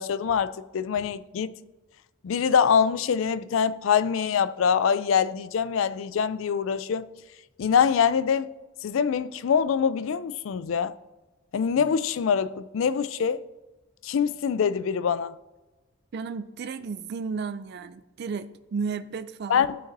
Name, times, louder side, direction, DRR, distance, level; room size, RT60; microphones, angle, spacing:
voice 1, 0.0-1.5 2.2-7.1 7.6-8.5 8.8-10.9 11.5-13.4 14.0-15.3 19.5-19.8, left 7 dB, 75° left, 0.4 m, -24 dB
voice 2, 16.1-19.7, right 5 dB, 55° right, 0.4 m, -33 dB
13.5 x 6.0 x 2.6 m
head